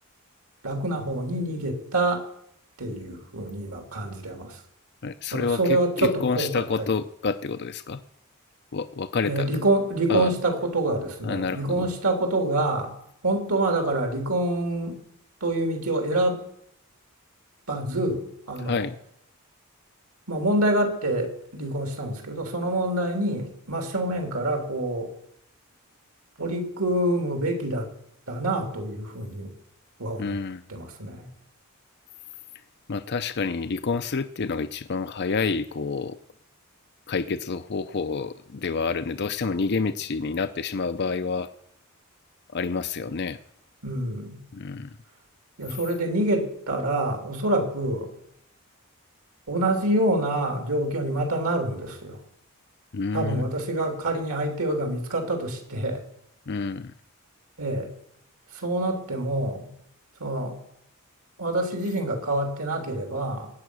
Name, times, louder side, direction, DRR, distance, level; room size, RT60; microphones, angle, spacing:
voice 1, 0.6-2.2 2.8-4.6 5.3-6.9 9.2-12.9 13.2-15.0 15.4-16.4 17.7-18.2 18.5-18.9 20.3-25.1 26.4-27.9 28.3-29.5 30.0-30.4 30.7-31.3 43.8-44.4 45.6-48.1 49.5-52.2 53.1-56.0 57.6-57.9 58.5-59.7 60.2-60.6 61.4-63.5, right 1 dB, 90° right, 4 dB, 3.3 m, -26 dB
voice 2, 5.0-8.0 8.7-9.5 10.1-10.3 11.2-11.9 18.6-19.0 30.2-30.6 32.9-36.2 37.1-41.5 42.5-43.4 44.5-44.9 52.9-53.5 56.5-56.9, left 4 dB, 50° left, 10 dB, 0.6 m, -28 dB
20.5 x 9.5 x 6.3 m, 0.75 s
head